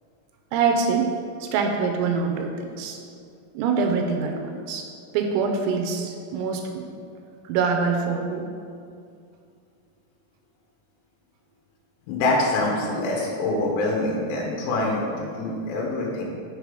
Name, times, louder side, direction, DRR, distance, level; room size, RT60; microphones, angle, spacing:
voice 1, 0.5-1.1 1.4-3.0 3.5-6.9 7.5-8.5, right 5 dB, 80° right, 3 dB, 3.2 m, -25 dB
voice 2, 12.1-16.3, left 2 dB, 85° left, -2 dB, 3.8 m, -25 dB
6.8 x 6.8 x 4.8 m, 2.3 s
omnidirectional pair, 6.0 m